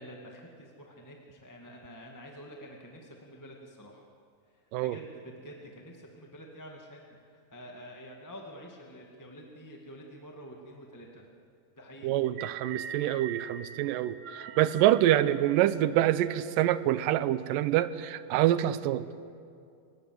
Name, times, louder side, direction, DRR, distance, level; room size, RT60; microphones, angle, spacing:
voice 1, 0.0-4.0 4.8-11.3 11.8-12.1, equal, 10° left, 0 dB, 1.2 m, -48 dB
voice 2, 12.0-19.1, right 13 dB, 80° right, 14 dB, 2.3 m, -26 dB
sound 1, 12.2-16.6, right 7 dB, 60° right, 2.3 m, -43 dB
29.0 x 18.5 x 7.9 m, 2.4 s
omnidirectional pair, 4.0 m